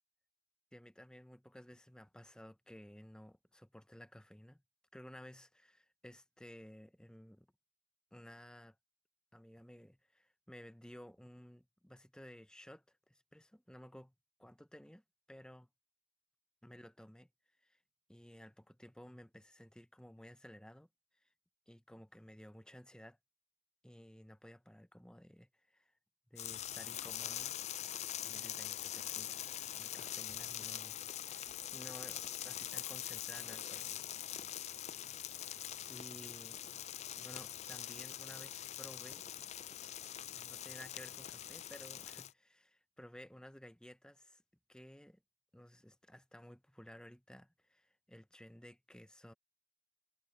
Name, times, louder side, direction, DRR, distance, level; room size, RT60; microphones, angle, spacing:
voice 1, 0.7-4.6 4.9-7.5 8.1-8.8 9.3-14.1 14.4-15.0 15.3-15.7 16.6-17.3 17.6-17.8 18.1-20.9 21.7-23.2 23.8-25.9 26.3-27.5 28.2-29.4 29.7-31.0 31.3-34.1 35.4-36.7 37.2-39.3 40.3-44.4 44.7-45.2 45.5-49.3, equal, 5° left, 0.7 m, -55 dB
sound 1, 26.4-42.3, left 11 dB, 40° left, 0.4 m, -43 dB
head